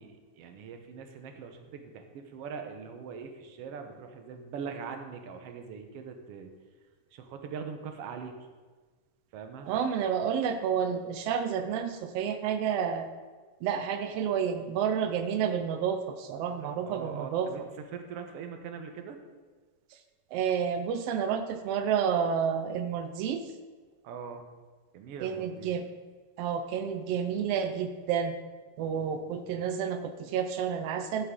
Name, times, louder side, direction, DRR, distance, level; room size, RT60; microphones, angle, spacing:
voice 1, 0.0-6.5 7.1-8.4 9.3-9.7 16.8-17.6 17.9-19.2 24.0-24.5 24.9-25.8 29.0-29.3, right 6 dB, 70° right, 5 dB, 1.6 m, -42 dB
voice 2, 9.7-13.1 13.6-17.5 20.3-23.5 25.2-25.9 26.4-28.3 28.8-31.3, right 7 dB, 85° right, 7 dB, 1.4 m, -30 dB
11.5 x 8.1 x 3.7 m, 1.4 s
omnidirectional pair, 3.4 m